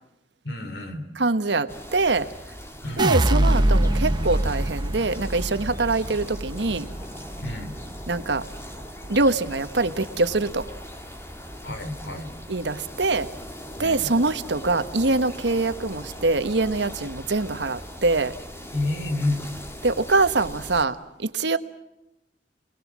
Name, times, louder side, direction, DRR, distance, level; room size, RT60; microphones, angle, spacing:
voice 1, 0.4-1.1 2.8-3.1 7.4-7.7 11.6-12.3 13.7-14.1 18.7-19.5, left 2 dB, 70° left, 8 dB, 3.7 m, -29 dB
voice 2, 1.2-2.3 3.0-6.9 8.1-8.4 9.1-10.7 12.5-13.3 13.8-18.3 19.8-21.6, right 3 dB, 80° right, 11 dB, 1.3 m, -24 dB
sound 1, 1.7-20.8, equal, 15° left, 2.4 m, -40 dB
sound 2, 3.0-9.2 9.5-10.1, right 1 dB, 25° right, 1.0 m, -25 dB
28.5 x 20.5 x 7.5 m, 0.87 s
head